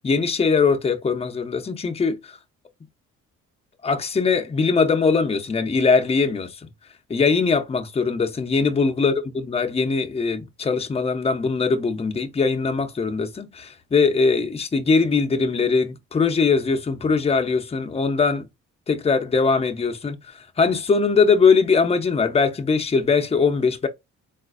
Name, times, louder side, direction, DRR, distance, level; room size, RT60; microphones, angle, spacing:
voice 1, 0.0-2.4 3.8-6.7 7.1-18.4 18.9-23.9, left 4 dB, 20° left, 0.6 m, -21 dB
3.8 x 2.4 x 2.4 m
cardioid pair, 90°, 30 cm